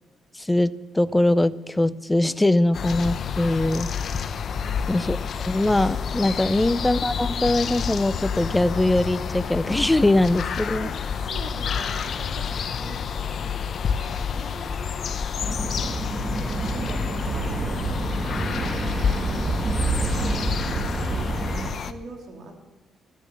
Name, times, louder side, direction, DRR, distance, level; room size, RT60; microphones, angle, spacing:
voice 1, 0.3-3.9 4.9-5.2 5.5-10.9, left 1 dB, 10° left, 16 dB, 0.6 m, -22 dB
sound 1, 2.7-21.9, left 7 dB, 55° left, 0.9 m, -29 dB
voice 2, 4.6-5.0 10.7-22.5, right 3 dB, 60° right, 3 dB, 3.2 m, -44 dB
sound 2, 15.4-21.7, right 3 dB, 30° right, 1.7 m, -28 dB
13.5 x 10.5 x 7.7 m, 1.2 s
cardioid pair, 90°, 0 cm